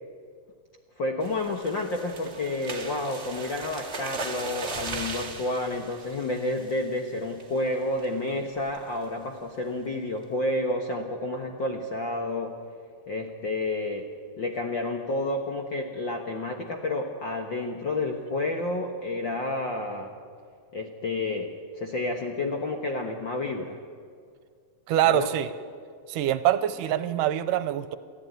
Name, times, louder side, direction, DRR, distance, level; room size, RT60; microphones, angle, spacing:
voice 1, 1.0-12.6 13.1-14.1 14.4-20.2 20.7-23.8 25.1-25.3, left 2 dB, 55° left, 3 dB, 1.3 m, -30 dB
sound 1, 1.2-7.0 7.4-7.7 8.0-8.1 8.5-8.8, right 3 dB, 25° right, 1.5 m, -38 dB
voice 2, 24.9-25.5 26.1-28.0, right 11 dB, 80° right, 13 dB, 2.4 m, -24 dB
29.0 x 13.5 x 9.3 m, 2.1 s
omnidirectional pair, 3.8 m